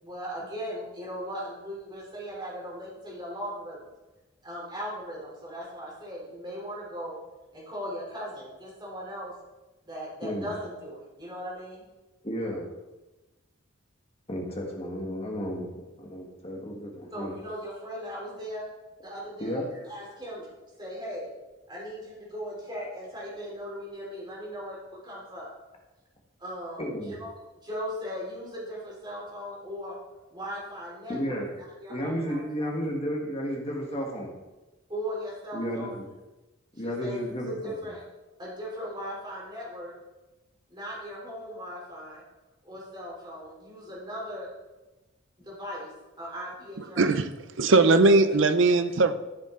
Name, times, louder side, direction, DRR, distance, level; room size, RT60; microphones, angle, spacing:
voice 1, 0.0-3.9 4.4-7.2 7.5-9.3 9.8-11.8 17.1-18.7 19.0-20.5 20.8-21.3 21.7-25.5 26.4-27.3 27.6-29.9 30.3-31.4 31.8-32.7 34.9-36.0 36.8-38.0 38.4-39.9 40.7-42.2 42.6-44.5 45.4-45.9 46.2-47.0 47.7-47.9 48.3-48.6, equal, 20° right, -6 dB, 3.5 m, -38 dB
voice 2, 12.2-12.7 14.3-15.7 16.0-17.3 19.4-19.7 26.8-27.1 31.1-31.5 31.9-34.3 35.5-36.0 36.7-37.7, equal, 30° left, 0 dB, 1.7 m, -32 dB
voice 3, 47.0-47.3 47.6-49.1, right 3 dB, 60° right, 11 dB, 0.6 m, -19 dB
13.5 x 6.6 x 3.9 m, 1.1 s
head